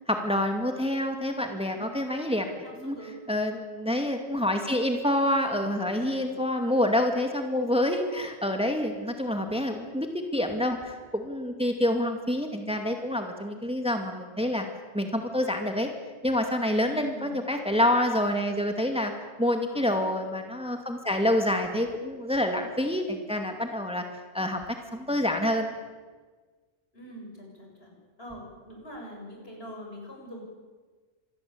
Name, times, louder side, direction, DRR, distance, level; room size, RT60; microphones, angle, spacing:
voice 1, 0.1-2.5 2.8-3.0 3.3-14.7 14.9-15.9 16.2-19.1 19.4-25.7, left 1 dB, 5° right, 4 dB, 2.2 m, -27 dB
voice 2, 1.7-2.2 2.6-3.3 6.0-6.4 16.8-17.4 19.4-19.9 26.9-30.4, equal, 65° left, 0 dB, 7.9 m, -44 dB
26.0 x 20.5 x 8.6 m, 1.4 s
omnidirectional pair, 1.1 m